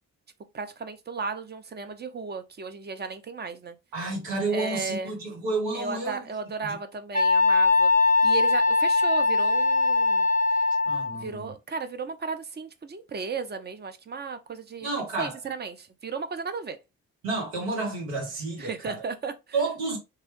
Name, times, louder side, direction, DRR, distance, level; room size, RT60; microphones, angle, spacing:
voice 1, 0.5-3.8 4.5-5.1 5.7-7.9 8.2-10.6 11.2-16.8 18.6-19.3, right 4 dB, 25° right, 0.5 m, -35 dB
voice 2, 3.9-6.3 6.6-6.8 10.8-11.5 14.8-15.3 17.2-19.0 19.5-20.0, right 3 dB, 70° right, 1.3 m, -30 dB
Wind instrument woodwind instrument, 7.1-11.2, left 3 dB, 20° left, 0.6 m, -21 dB
3.0 x 2.3 x 3.0 m
figure-of-eight pair, 40°, 41 cm